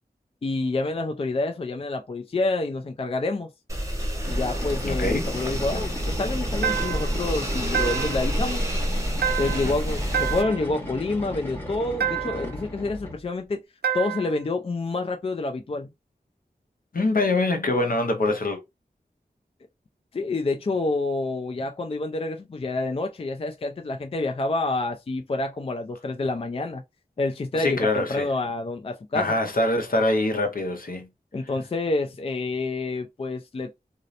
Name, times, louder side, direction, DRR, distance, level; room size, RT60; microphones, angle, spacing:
voice 1, 0.4-3.5 4.3-8.6 9.4-13.6 13.9-15.9 20.1-26.8 27.2-29.4 31.3-33.7, left 2 dB, 35° left, 0.3 m, -28 dB
sound 1, 3.7-10.4, equal, 20° right, 0.8 m, -28 dB
sound 2, 4.2-13.3, left 1 dB, 10° left, 1.0 m, -36 dB
voice 2, 4.8-5.3 9.5-9.8 16.9-18.6 27.5-28.3 29.1-31.1, left 2 dB, 60° left, 0.7 m, -24 dB
sound 3, 6.6-7.2 7.7-8.3 9.2-9.8 10.1-10.7 12.0-12.5 13.8-14.4, right 9 dB, 85° right, 0.4 m, -28 dB
2.8 x 2.0 x 2.5 m
wide cardioid pair, 50°, 16 cm